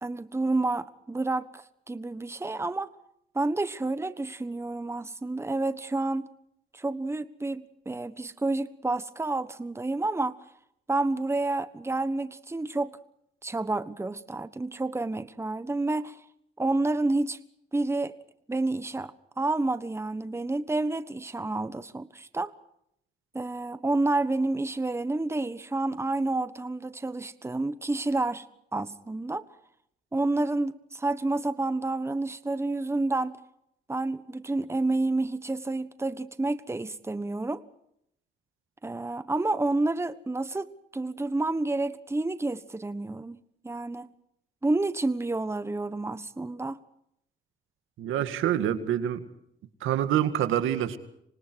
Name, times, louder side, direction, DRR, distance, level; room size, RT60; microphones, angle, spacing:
voice 1, 0.0-2.9 3.3-6.3 6.7-10.4 10.9-13.0 13.4-16.2 16.6-17.4 17.7-18.1 18.5-22.5 23.3-28.4 28.7-29.4 30.1-33.3 33.9-37.6 38.8-44.1 44.6-46.8, right 2 dB, 15° right, 13 dB, 1.3 m, -29 dB
voice 2, 48.0-49.3 49.8-51.0, right 11 dB, 85° right, 10 dB, 2.1 m, -26 dB
27.5 x 25.5 x 4.7 m, 0.74 s
cardioid pair, 90°, 20 cm